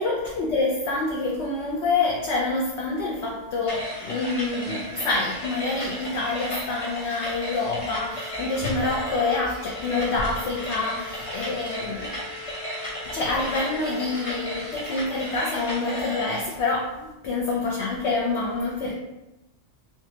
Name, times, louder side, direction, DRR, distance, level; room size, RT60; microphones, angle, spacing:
voice 1, 0.0-12.1 13.0-18.9, left 3 dB, 65° left, -3 dB, 0.8 m, -27 dB
sound 1, 3.7-16.5, equal, 35° left, 0.7 m, -34 dB
sound 2, 7.9-15.0, left 3 dB, 50° right, 0.7 m, -43 dB
3.3 x 3.0 x 2.9 m, 0.98 s
omnidirectional pair, 1.3 m